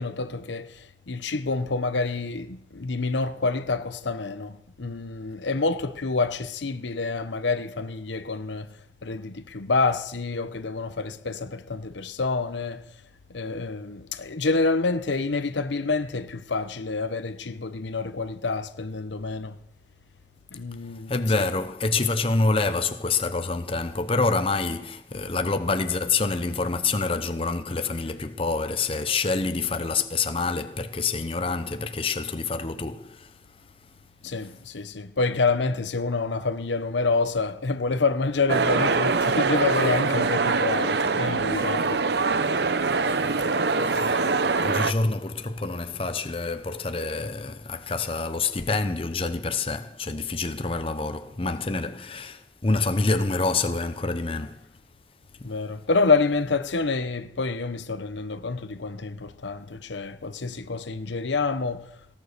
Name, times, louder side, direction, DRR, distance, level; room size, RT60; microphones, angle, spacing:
voice 1, 0.0-8.7 9.0-12.8 13.3-19.6 20.5-21.5 34.2-42.1 55.4-61.9, left 3 dB, 80° left, 0.9 m, -27 dB
voice 2, 21.1-33.3 43.8-54.6 55.4-55.5, left 3 dB, 30° left, 0.7 m, -27 dB
sound 1, 38.5-44.9, right 4 dB, 65° right, 0.7 m, -23 dB
18.0 x 9.7 x 6.7 m
head